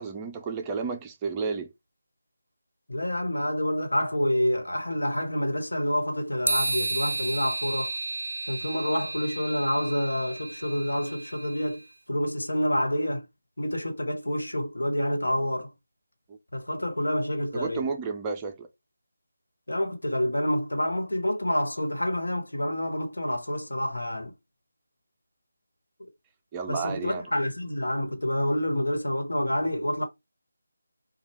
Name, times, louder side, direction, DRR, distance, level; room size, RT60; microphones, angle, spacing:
voice 1, 0.0-1.7 16.3-16.4 17.5-18.7 26.5-27.3, right 5 dB, 15° right, 0.4 m, -32 dB
voice 2, 2.9-7.9 8.5-13.2 13.6-15.7 16.5-17.9 19.7-24.3 26.7-30.0, left 1 dB, 90° left, 1.3 m, -28 dB
sound 1, 6.5-11.8, right 2 dB, 80° right, 0.4 m, -32 dB
4.2 x 2.3 x 3.4 m
figure-of-eight pair, 165°, 0 cm